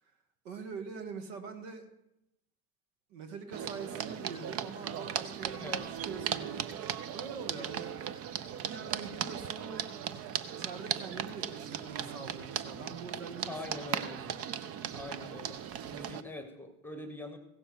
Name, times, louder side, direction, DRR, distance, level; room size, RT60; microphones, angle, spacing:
voice 1, 0.4-1.8 3.1-8.0 8.6-9.8 10.4-14.4, right 5 dB, 60° right, 7 dB, 2.1 m, -44 dB
sound 1, 3.5-16.2, right 9 dB, 35° right, 0.7 m, -37 dB
voice 2, 13.5-14.2 14.9-15.6 15.9-17.4, left 2 dB, 5° left, 8 dB, 1.3 m, -43 dB
16.0 x 6.6 x 6.2 m, 0.84 s
hypercardioid pair, 100°, 43 cm